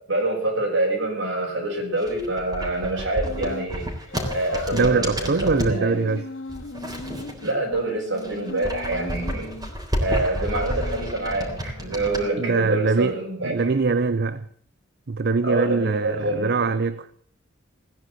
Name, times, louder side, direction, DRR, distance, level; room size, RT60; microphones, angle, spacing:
voice 1, 0.1-3.9 4.3-6.0 7.4-9.5 10.0-13.7 15.4-16.7, right 2 dB, 75° right, 6.3 m, -26 dB
sound 1, 1.9-5.8 6.5-7.8 8.1-12.2, equal, 20° right, 3.7 m, -30 dB
sound 2, 3.2-3.7 4.1-9.7 10.4-13.4, left 2 dB, 90° left, 2.0 m, -38 dB
voice 2, 4.7-6.2 10.1-10.3 12.4-13.1 13.4-14.5 15.1-17.0, right 4 dB, 55° right, 0.6 m, -23 dB
17.5 x 10.0 x 7.9 m
head